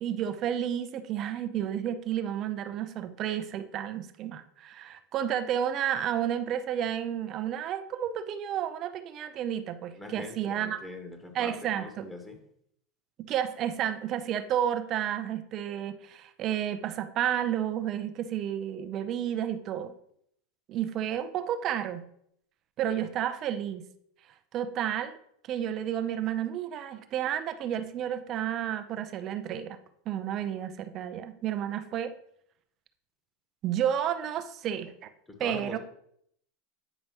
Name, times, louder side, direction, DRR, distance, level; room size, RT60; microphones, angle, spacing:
voice 1, 0.0-10.8 11.3-12.1 13.2-19.9 20.7-22.1 22.8-23.9 24.5-25.2 25.5-29.8 30.1-32.1 33.6-35.1 35.4-35.8, right 10 dB, 45° right, 10 dB, 0.7 m, -31 dB
voice 2, 9.9-12.4 35.4-35.8, left 1 dB, 10° left, 4 dB, 1.5 m, -42 dB
9.0 x 5.3 x 3.0 m, 0.71 s
hypercardioid pair, 85°, 0 cm